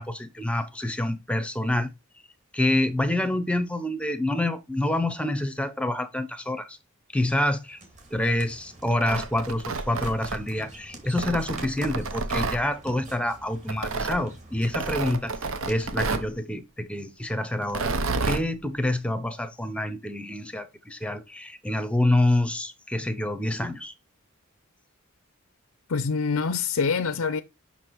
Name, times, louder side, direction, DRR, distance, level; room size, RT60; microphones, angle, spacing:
voice 1, 0.0-1.9 2.5-6.8 7.1-7.8 8.1-15.3 15.7-17.9 18.2-23.9, left 1 dB, 5° left, 0.8 m, -27 dB
sound 1, 7.6-16.2, right 1 dB, 35° right, 2.3 m, -47 dB
Tearing, 8.9-10.7 11.2-12.6 13.7-14.2 14.7-16.3 17.6-18.4, right 3 dB, 65° right, 0.9 m, -29 dB
voice 2, 25.9-27.4, left 5 dB, 75° left, 0.6 m, -25 dB
6.0 x 5.9 x 4.6 m
head